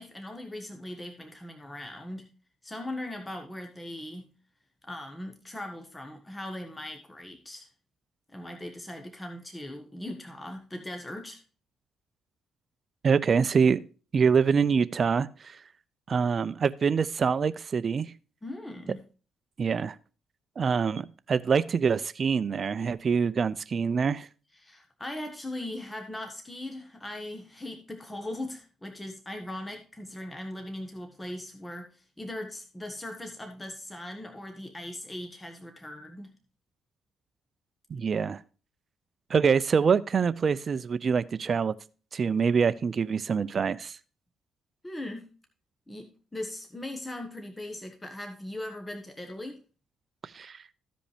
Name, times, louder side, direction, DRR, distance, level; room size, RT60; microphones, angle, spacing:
voice 1, 0.0-2.3 2.6-4.3 4.8-7.7 8.3-11.4 18.4-19.0 24.5-36.3 44.8-45.3 45.9-49.6, left 1 dB, 15° left, 1.3 m, -39 dB
voice 2, 13.0-13.8 14.1-15.6 16.1-18.1 19.6-20.0 20.6-24.3 37.9-38.4 39.3-41.7 42.1-44.0 50.2-50.6, right 6 dB, 45° right, 0.4 m, -25 dB
14.5 x 5.1 x 3.4 m
cardioid pair, 90°, 0 cm